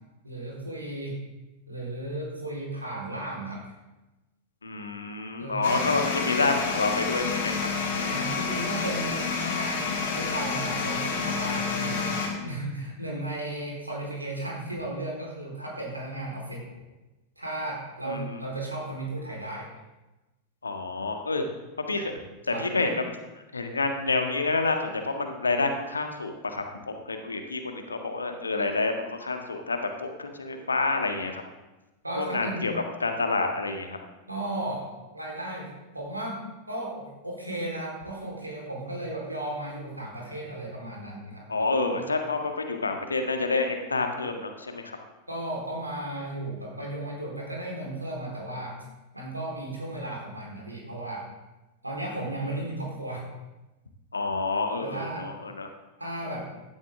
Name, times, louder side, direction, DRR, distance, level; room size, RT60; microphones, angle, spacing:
voice 1, 0.2-1.2 1.7-3.6 5.4-5.8 7.9-12.1 12.4-16.7 17.4-19.7 22.0-22.1 22.5-22.7 32.0-32.7 34.3-35.7 35.9-41.4 41.9-42.0 45.3-48.8 49.1-51.2 51.8-53.3 54.8-55.3 56.0-56.5, right 1 dB, 85° right, -2 dB, 4.2 m, -35 dB
voice 2, 4.6-7.7 18.1-18.2 20.6-21.4 21.9-22.1 22.5-23.0 23.5-28.9 29.2-31.4 32.2-32.7 33.0-34.0 41.5-45.0 54.1-55.7, left 3 dB, 75° left, 5 dB, 1.6 m, -28 dB
sound 1, 5.6-12.3, left 5 dB, 55° left, 3.1 m, -29 dB
16.0 x 12.0 x 3.7 m, 1.1 s
figure-of-eight pair, 90°, 0 cm